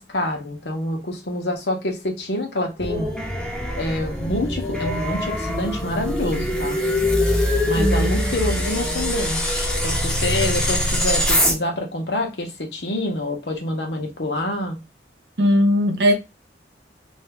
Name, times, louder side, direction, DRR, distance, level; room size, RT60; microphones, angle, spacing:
voice 1, 0.0-3.1 3.8-6.8 7.7-9.4 9.8-14.8, left 1 dB, 75° left, 1.0 m, -26 dB
sound 1, 2.8-11.5, left 1 dB, 5° left, 0.7 m, -23 dB
voice 2, 7.7-8.3 15.4-16.1, equal, 70° right, 0.8 m, -19 dB
2.8 x 2.7 x 3.4 m
head